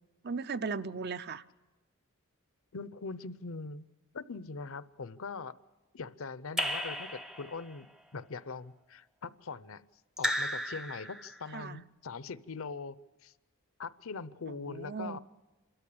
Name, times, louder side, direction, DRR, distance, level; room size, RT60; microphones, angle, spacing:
voice 1, 0.2-1.4 11.5-11.8 14.5-15.2, right 5 dB, 45° right, 13 dB, 0.6 m, -37 dB
voice 2, 2.7-3.8 4.1-5.5 5.9-9.8 10.2-13.0 13.2-13.3 13.8-15.2, left 4 dB, 65° left, 16 dB, 0.7 m, -41 dB
Raindrop / Drip, 6.6-7.8 10.2-11.5, equal, ahead, 0.6 m, -34 dB
27.5 x 13.5 x 8.6 m, 1.1 s
head